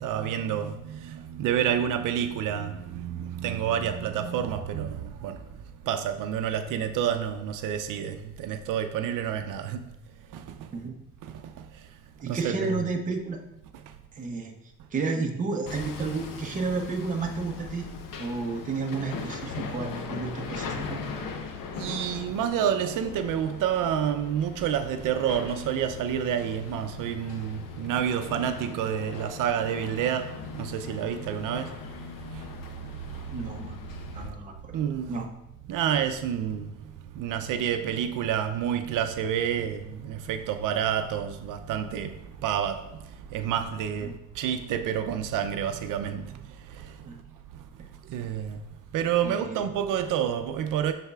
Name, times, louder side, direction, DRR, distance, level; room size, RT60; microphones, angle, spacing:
voice 1, 0.0-5.4 5.9-9.9 10.3-10.7 11.2-11.7 12.3-12.9 21.7-31.7 32.3-32.5 33.1-33.2 34.7-35.2 35.7-36.7 37.1-47.0 48.1-48.6 48.9-50.9, right 9 dB, 80° right, 0.5 m, -29 dB
voice 2, 12.2-13.4 14.1-14.5 14.9-17.9 18.2-21.0 33.3-33.8 34.1-34.8 35.1-35.3 47.0-47.2 49.2-49.7, right 4 dB, 25° right, 0.8 m, -31 dB
Hammer, 15.7-34.3, left 5 dB, 90° left, 0.9 m, -39 dB
12.0 x 4.1 x 2.4 m
cardioid pair, 165°, 31 cm